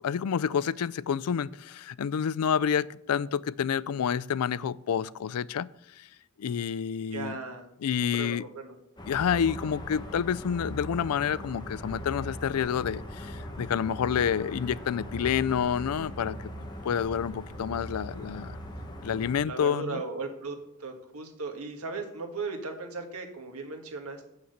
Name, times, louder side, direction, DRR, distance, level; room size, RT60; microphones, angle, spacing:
voice 1, 0.0-5.7 6.0-6.1 6.4-7.4 7.8-8.5 9.1-16.5 16.8-18.6 19.0-20.0, left 7 dB, 90° left, 20 dB, 0.4 m, -29 dB
voice 2, 7.1-7.7 8.0-8.8 19.5-20.6 20.8-24.2, right 3 dB, 80° right, 4 dB, 1.7 m, -37 dB
sound 1, 9.0-19.4, equal, 20° left, 1.3 m, -40 dB
7.2 x 6.5 x 7.9 m, 0.78 s
head